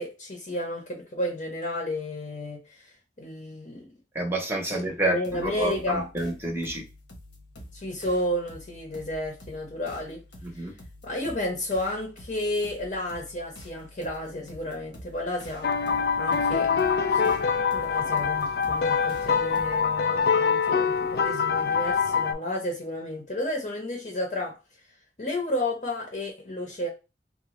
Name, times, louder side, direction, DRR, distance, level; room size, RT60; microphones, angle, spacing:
voice 1, 0.0-2.9 3.2-3.9 4.7-6.1 7.7-10.2 10.5-10.7 11.0-15.7 16.2-16.7 17.1-17.4 17.7-24.6 25.2-26.9, left 1 dB, 45° left, 0.8 m, -32 dB
voice 2, 4.1-6.8 10.4-10.7, right 1 dB, 15° right, 0.8 m, -29 dB
sound 1, 5.2-20.0, left 1 dB, 85° left, 1.1 m, -48 dB
sound 2, 15.6-22.3, left 6 dB, 60° left, 0.3 m, -24 dB
3.6 x 2.2 x 3.1 m
head